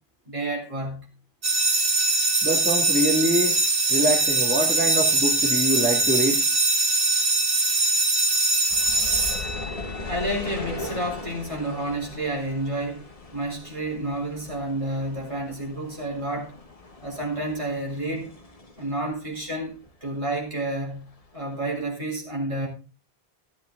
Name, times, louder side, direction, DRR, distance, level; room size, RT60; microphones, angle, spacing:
voice 1, 0.3-1.0 10.1-16.5 17.0-18.3 18.8-19.7 20.0-21.1 21.3-22.7, right 1 dB, 30° right, 4.1 m, -30 dB
sound 1, 1.4-10.1, right 3 dB, 60° right, 1.6 m, -22 dB
voice 2, 2.4-3.6 3.9-6.4, right 1 dB, 10° right, 2.1 m, -24 dB
sound 2, 8.7-19.9 20.2-21.3 21.7-21.8, left 2 dB, 35° left, 1.4 m, -39 dB
15.5 x 8.2 x 3.8 m
omnidirectional pair, 1.1 m